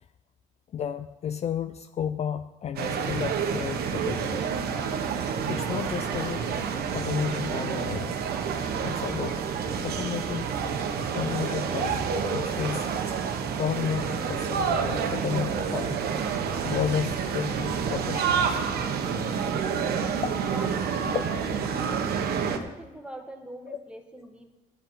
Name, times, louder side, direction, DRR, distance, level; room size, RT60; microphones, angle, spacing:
voice 1, 0.7-4.4 5.5-6.5 6.9-8.2 8.8-9.4 9.8-10.5 11.1-12.0 12.3-12.9 13.6-16.0 16.6-18.6 20.2-20.4 21.1-21.3 23.7-23.8, left 8 dB, 40° left, 10 dB, 0.4 m, -32 dB
sound 1, 2.8-22.6, right 6 dB, 70° right, 1.1 m, -28 dB
voice 2, 20.4-21.7 22.5-24.5, right 1 dB, 5° right, 3 dB, 1.3 m, -43 dB
10.0 x 7.9 x 5.6 m, 1.0 s
cardioid pair, 110°, 17 cm